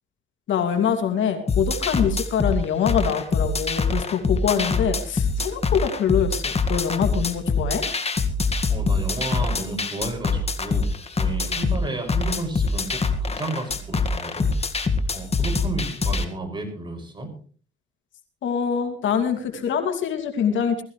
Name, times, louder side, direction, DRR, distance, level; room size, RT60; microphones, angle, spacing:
voice 1, 0.5-7.8 18.4-20.8, left 8 dB, 75° left, 5 dB, 2.6 m, -24 dB
sound 1, 1.5-16.2, left 4 dB, 30° left, 1.9 m, -24 dB
voice 2, 8.7-10.9 11.2-14.5 15.1-17.3, right 2 dB, 25° right, 3 dB, 6.3 m, -32 dB
20.0 x 15.0 x 3.3 m, 0.42 s
cardioid pair, 90°, 20 cm